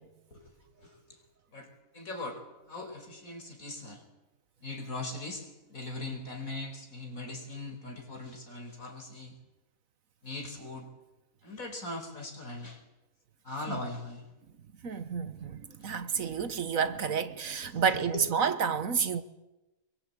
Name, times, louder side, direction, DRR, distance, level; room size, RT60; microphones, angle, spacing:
voice 1, 0.8-1.2 1.5-1.7 1.9-2.4 2.7-4.0 4.6-9.3 10.2-10.9 11.4-12.8 13.4-14.3 15.8-15.9 17.6-18.3, left 2 dB, 65° left, 5.2 m, -40 dB
voice 2, 14.8-19.2, right 6 dB, 65° right, 1.6 m, -30 dB
24.5 x 23.0 x 8.7 m
omnidirectional pair, 1.6 m